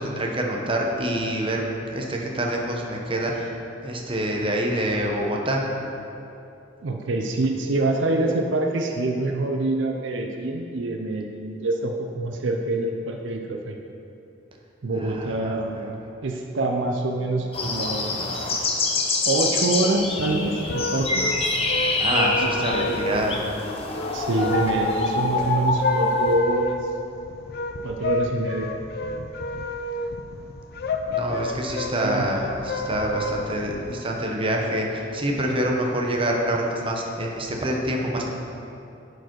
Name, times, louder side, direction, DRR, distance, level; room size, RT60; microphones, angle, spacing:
voice 1, 0.0-1.6 1.9-3.5 3.8-5.6 15.0-16.0 22.0-23.5 31.1-38.3, right 1 dB, 30° right, 0 dB, 0.9 m, -26 dB
voice 2, 6.8-13.8 14.8-15.7 16.2-18.8 19.2-21.2 22.4-23.0 24.1-26.9 27.8-28.7 32.0-32.3, right 2 dB, 70° right, 3 dB, 0.6 m, -26 dB
sound 1, 17.5-26.3, left 3 dB, 30° left, 0.8 m, -26 dB
sound 2, 20.0-33.9, left 2 dB, 55° left, 0.5 m, -31 dB
10.5 x 4.9 x 4.6 m, 2.8 s
head